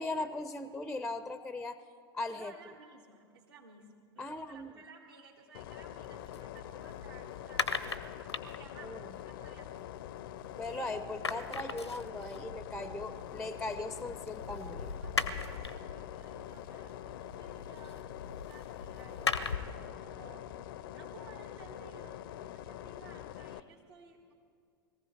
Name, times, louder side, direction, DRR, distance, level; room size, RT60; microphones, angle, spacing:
voice 1, 0.0-1.8 2.1-2.5 4.2-4.7 8.8-9.0 10.6-15.0, left 2 dB, 5° left, 12 dB, 0.5 m, -39 dB
voice 2, 2.3-8.0 8.4-9.9 15.0-18.1 18.4-20.5 20.9-24.3, right 4 dB, 75° right, -5 dB, 1.8 m, -56 dB
sound 1, 5.5-23.6, left 12 dB, 55° left, 0.5 m, -45 dB
sound 2, 6.0-10.7 11.0-19.9, left 4 dB, 90° left, 0.7 m, -40 dB
22.0 x 15.0 x 4.3 m, 2.4 s
figure-of-eight pair, 85°, 14 cm